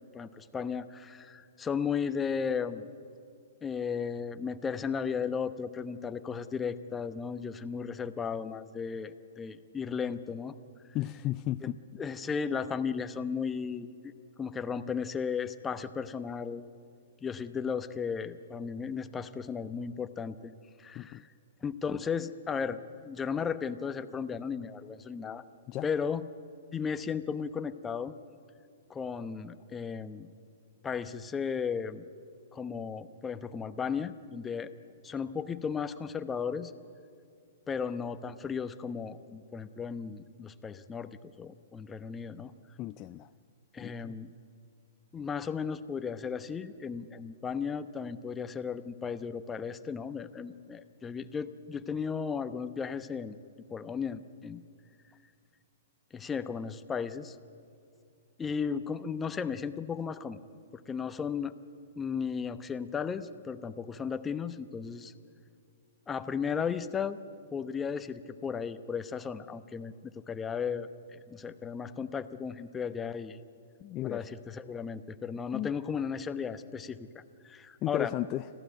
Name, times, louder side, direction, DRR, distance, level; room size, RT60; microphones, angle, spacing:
voice 1, 0.1-2.9 3.6-10.5 11.6-11.7 12.0-14.1 14.4-16.6 17.2-20.5 20.8-21.2 21.6-22.8 23.0-25.4 25.8-26.2 26.7-28.1 28.9-30.3 30.8-32.0 32.5-34.7 35.0-36.7 37.7-42.5 43.7-44.3 45.1-53.4 53.7-54.6 56.1-57.3 58.4-60.4 60.9-61.5 62.0-65.1 66.1-67.2 67.5-73.4 74.0-78.1, left 6 dB, 15° left, 10 dB, 0.9 m, -35 dB
voice 2, 10.9-11.8 20.9-21.2 25.7-25.9 42.8-43.3 43.8-44.2 73.8-74.3 75.5-75.7 77.8-78.5, left 15 dB, 30° left, 11 dB, 0.5 m, -34 dB
25.5 x 15.5 x 9.2 m, 2.4 s
hypercardioid pair, 125°, 0 cm